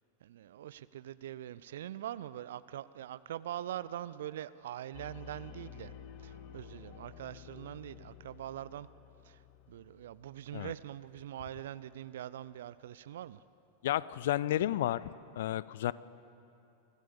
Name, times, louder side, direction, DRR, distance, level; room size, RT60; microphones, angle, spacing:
voice 1, 0.0-5.9 6.2-8.9 9.2-13.4, right 11 dB, 60° right, 17 dB, 0.4 m, -43 dB
sound 1, 4.9-11.7, left 11 dB, 40° left, 0.8 m, -53 dB
sound 2, 5.4-8.9, left 2 dB, 90° left, 3.9 m, -58 dB
voice 2, 13.8-15.1 15.4-15.9, left 13 dB, 55° left, 19 dB, 0.5 m, -31 dB
24.0 x 16.0 x 6.9 m, 2.9 s
figure-of-eight pair, 90°, 0 cm